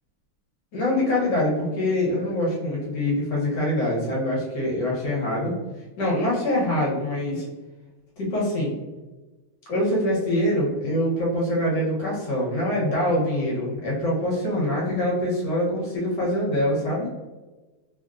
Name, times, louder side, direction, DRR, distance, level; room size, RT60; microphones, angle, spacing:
voice 1, 0.7-5.6 6.0-7.5 8.2-8.7 9.7-17.1, left 1 dB, 65° left, -5 dB, 1.4 m, -24 dB
3.6 x 2.1 x 2.4 m, 1.2 s
omnidirectional pair, 2.3 m